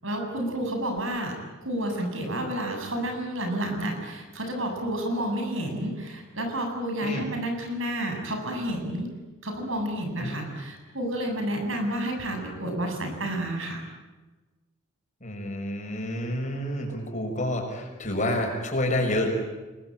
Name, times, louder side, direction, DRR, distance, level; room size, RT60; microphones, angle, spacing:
voice 1, 0.0-1.4 1.6-9.1 9.4-13.8, right 1 dB, 70° right, 4 dB, 7.9 m, -30 dB
voice 2, 15.2-19.3, left 1 dB, 35° left, 2 dB, 6.3 m, -29 dB
28.0 x 21.5 x 9.0 m, 1.2 s
head